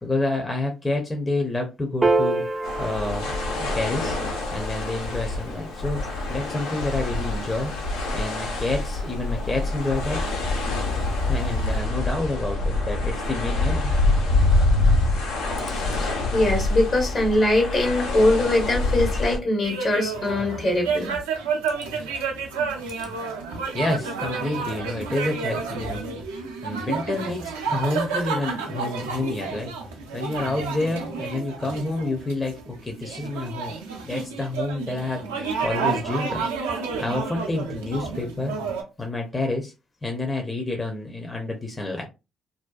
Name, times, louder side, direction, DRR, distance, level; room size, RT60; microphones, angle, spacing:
voice 1, 0.0-2.4 2.8-4.2 4.5-6.0 6.3-7.7 8.1-10.2 11.3-13.9 23.7-26.1 26.6-29.7 30.1-33.8 34.0-36.5 37.0-38.5 39.0-39.7 40.0-42.1, left 2 dB, 20° left, 0.6 m, -28 dB
Piano, 2.0-8.6, right 2 dB, 25° right, 0.5 m, -30 dB
sound 1, 2.6-19.4, left 2 dB, 80° left, 0.6 m, -25 dB
voice 2, 15.7-21.2, left 1 dB, 50° left, 0.9 m, -22 dB
sound 2, 19.6-38.8, right 5 dB, 85° right, 0.4 m, -30 dB
2.6 x 2.2 x 2.3 m
hypercardioid pair, 50°, 0 cm